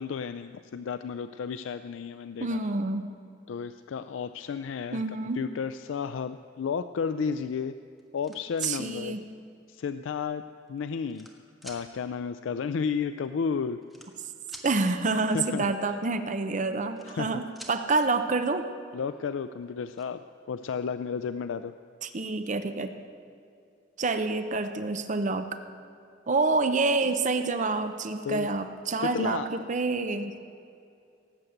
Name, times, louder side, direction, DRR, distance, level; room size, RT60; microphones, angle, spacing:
voice 1, 0.0-2.6 3.5-5.0 5.4-7.7 8.1-9.2 9.7-10.4 10.7-11.3 11.6-13.8 15.3-15.6 17.1-17.4 18.9-20.2 20.5-21.7 28.2-28.5 29.0-29.5, left 6 dB, 85° left, 11 dB, 0.4 m, -32 dB
voice 2, 2.4-3.1 4.9-5.4 8.6-9.2 14.6-18.7 22.0-22.9 24.0-25.5 26.3-30.4, right 3 dB, 40° right, 9 dB, 0.7 m, -27 dB
sound 1, 8.0-8.8 9.7-9.8 10.7-11.3 11.6-11.8 13.0-13.1 13.2-13.4 13.8-14.7 16.6-17.3 17.5-17.8 19.2-19.3 19.6-20.0, equal, ahead, 1.4 m, -47 dB
18.0 x 7.9 x 7.9 m, 2.5 s
head